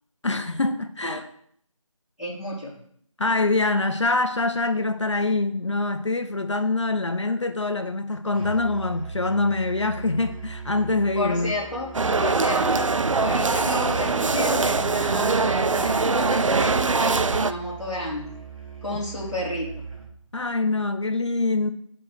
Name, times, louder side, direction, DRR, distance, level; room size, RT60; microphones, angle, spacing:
voice 1, 0.2-1.2 3.2-11.5 20.3-21.7, left 2 dB, 60° left, 0.7 m, -24 dB
voice 2, 2.2-2.7 7.2-7.3 11.1-11.9 12.2-12.9 13.2-18.3 18.8-19.8, left 1 dB, ahead, 1.3 m, -31 dB
Musical instrument, 8.3-20.2, right 3 dB, 85° right, 3.6 m, -40 dB
sound 1, 11.9-17.5, right 4 dB, 70° right, 0.4 m, -22 dB
6.1 x 4.5 x 6.4 m
figure-of-eight pair, 170°, 17 cm